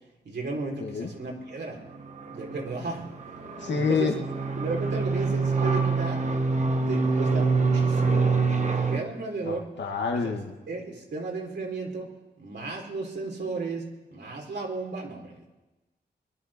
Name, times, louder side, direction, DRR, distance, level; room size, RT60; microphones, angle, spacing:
voice 1, 0.2-1.8 2.2-3.1 3.7-4.1 4.6-6.2 6.9-8.5 8.7-9.7 10.1-10.4 10.7-12.1 12.4-15.5, right 3 dB, 70° right, -1 dB, 4.1 m, -34 dB
voice 2, 0.8-1.1 3.6-4.1 9.5-10.5, left 5 dB, 80° left, 3 dB, 1.9 m, -28 dB
sound 1, 2.0-9.0, right 4 dB, 40° right, 1.5 m, -26 dB
23.5 x 11.5 x 4.4 m, 1.1 s
wide cardioid pair, 95°, 18 cm